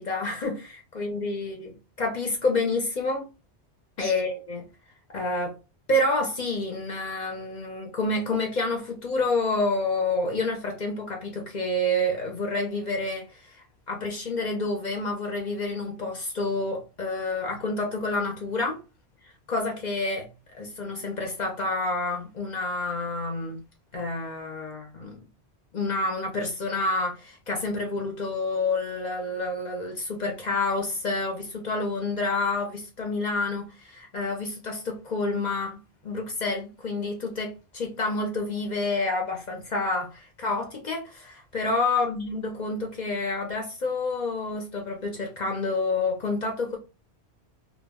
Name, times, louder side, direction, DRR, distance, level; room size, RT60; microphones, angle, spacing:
voice 1, 0.0-1.7 2.0-3.3 4.0-4.6 5.1-5.5 5.9-18.8 19.5-20.3 20.5-23.6 23.9-25.2 25.7-46.8, left 2 dB, 50° left, 0.6 m, -28 dB
2.2 x 2.0 x 3.4 m
omnidirectional pair, 1.1 m